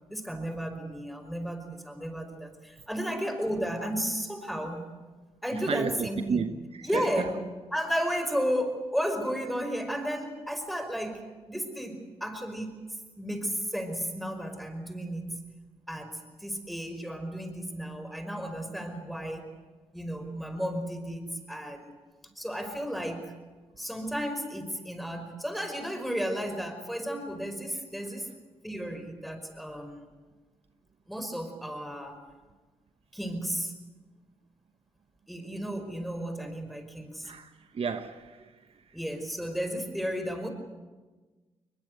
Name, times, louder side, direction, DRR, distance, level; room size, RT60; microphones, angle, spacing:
voice 1, 0.1-4.8 5.4-6.4 6.8-7.4 7.7-12.8 13.2-15.4 15.9-19.5 19.9-21.9 22.4-23.3 23.8-28.4 28.6-30.1 31.1-32.2 33.1-33.8 35.3-37.3 38.9-40.5, equal, ahead, 5.2 m, -33 dB
voice 2, 5.5-7.3 37.2-38.5, right 5 dB, 60° right, 1.2 m, -33 dB
22.0 x 21.5 x 8.1 m
cardioid pair, 60°, 11 cm